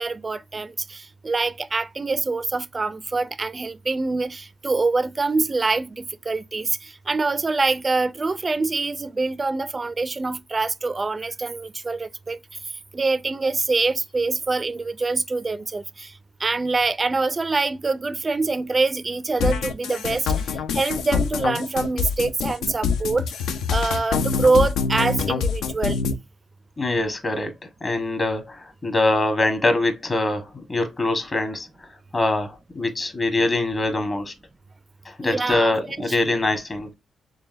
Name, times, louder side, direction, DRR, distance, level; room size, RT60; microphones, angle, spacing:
voice 1, 0.0-12.4 12.9-16.1 16.4-23.3 23.7-26.0 35.2-35.8 36.1-36.2, right 3 dB, 30° right, 0.3 m, -25 dB
sound 1, 19.4-26.1, left 6 dB, 85° left, 0.4 m, -25 dB
voice 2, 26.8-27.5 27.8-31.9 32.1-34.3 35.0-36.9, left 2 dB, 40° left, 1.1 m, -23 dB
3.9 x 3.2 x 2.5 m
cardioid pair, 70°, 0 cm